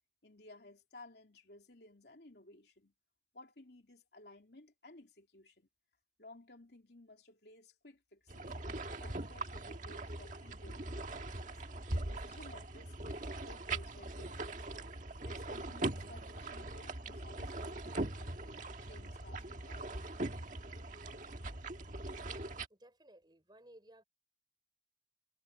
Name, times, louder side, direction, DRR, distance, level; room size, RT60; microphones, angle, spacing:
voice 1, 0.2-2.9 3.3-5.7 6.2-8.5 9.0-11.6 12.1-14.7 15.2-20.0, left 2 dB, 65° left, 3.0 m, -57 dB
sound 1, 8.3-22.7, right 2 dB, 45° right, 1.6 m, -41 dB
voice 2, 22.7-24.0, right 1 dB, 25° right, 4.8 m, -59 dB
head